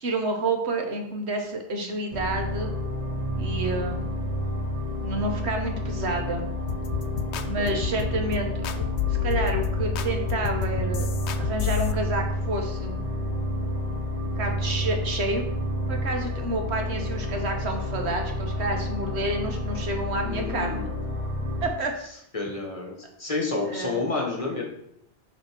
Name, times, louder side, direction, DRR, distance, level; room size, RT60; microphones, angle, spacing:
voice 1, 0.0-2.7 3.4-4.2 5.0-6.5 7.4-11.1 11.4-13.0 14.4-15.4 15.9-20.9 21.6-21.9 23.7-24.0, right 2 dB, 75° right, 4 dB, 1.3 m, -29 dB
sound 1, 2.1-21.7, left 1 dB, 30° right, 1.2 m, -30 dB
sound 2, 6.7-11.9, left 10 dB, 90° left, 0.9 m, -29 dB
voice 2, 7.3-7.8 20.2-20.9 22.3-22.9 23.2-24.6, left 3 dB, 30° left, -1 dB, 1.5 m, -30 dB
6.5 x 3.4 x 5.9 m, 0.74 s
omnidirectional pair, 1.1 m